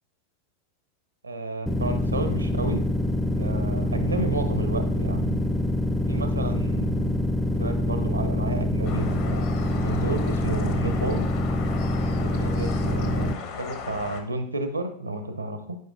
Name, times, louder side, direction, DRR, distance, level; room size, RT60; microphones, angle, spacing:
voice 1, 1.2-2.9 3.4-5.4 6.1-7.2 7.6-11.3 12.2-15.8, right 2 dB, 80° right, 8 dB, 0.7 m, -31 dB
sound 1, 1.7-13.3, left 1 dB, 5° right, 0.4 m, -25 dB
sound 2, 8.8-14.2, left 6 dB, 50° left, 0.8 m, -36 dB
9.3 x 5.0 x 2.6 m, 0.66 s
figure-of-eight pair, 90°, 0 cm